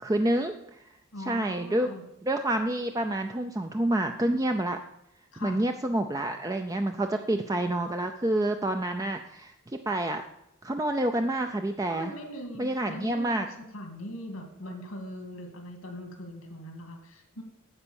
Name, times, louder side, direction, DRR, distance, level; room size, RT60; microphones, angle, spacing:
voice 1, 0.0-0.5 1.3-1.9 2.2-4.8 5.4-9.5 9.9-10.2 10.6-12.1 12.6-13.5, right 1 dB, 15° right, 6 dB, 0.4 m, -28 dB
voice 2, 1.1-2.0 5.3-5.7 11.9-17.4, equal, 90° left, 5 dB, 2.3 m, -41 dB
9.8 x 7.9 x 7.0 m, 0.83 s
head